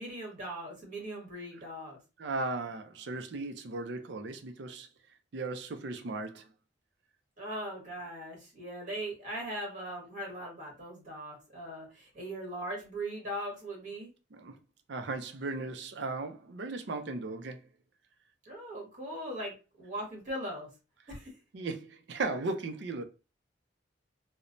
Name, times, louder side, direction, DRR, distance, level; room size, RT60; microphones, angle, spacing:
voice 1, 0.0-2.0 7.4-14.1 18.5-20.7 21.1-21.3, right 1 dB, 45° right, 1.4 m, -39 dB
voice 2, 2.2-4.9 5.3-6.4 14.3-14.5 14.9-17.6 21.5-23.0, right 3 dB, 70° right, 0.5 m, -36 dB
3.0 x 2.0 x 2.5 m
head